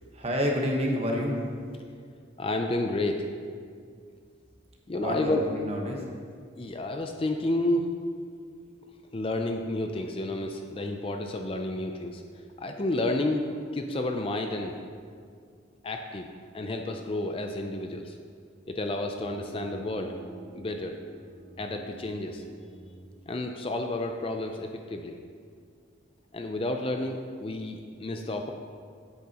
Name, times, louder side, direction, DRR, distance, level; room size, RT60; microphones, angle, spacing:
voice 1, 0.1-1.4 4.9-6.1, equal, 30° right, 0 dB, 1.2 m, -29 dB
voice 2, 2.4-3.3 4.9-5.4 6.6-7.9 9.1-12.2 12.6-14.8 15.8-16.3 16.5-18.2 18.7-20.1 20.5-21.0 21.6-22.4 23.3-25.2 26.3-28.5, left 2 dB, 30° left, 4 dB, 0.4 m, -30 dB
sound 1, 19.2-24.6, right 2 dB, 5° left, 1.7 m, -48 dB
10.5 x 8.3 x 2.9 m, 2.1 s
head